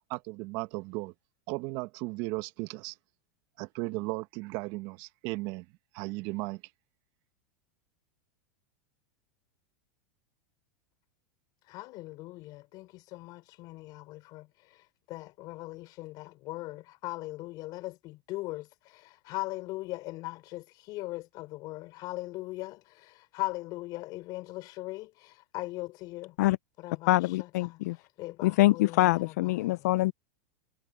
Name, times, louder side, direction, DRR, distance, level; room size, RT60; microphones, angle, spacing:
voice 1, 0.1-1.1 1.5-3.0 3.6-5.7 5.9-6.6, right 23 dB, 55° right, 1.6 m, -35 dB
voice 2, 11.6-26.4 26.8-29.9, left 19 dB, 45° left, 4.2 m, -40 dB
voice 3, 27.1-28.0 28.4-30.1, left 18 dB, 70° left, 0.5 m, -24 dB
supercardioid pair, 125°, 9 cm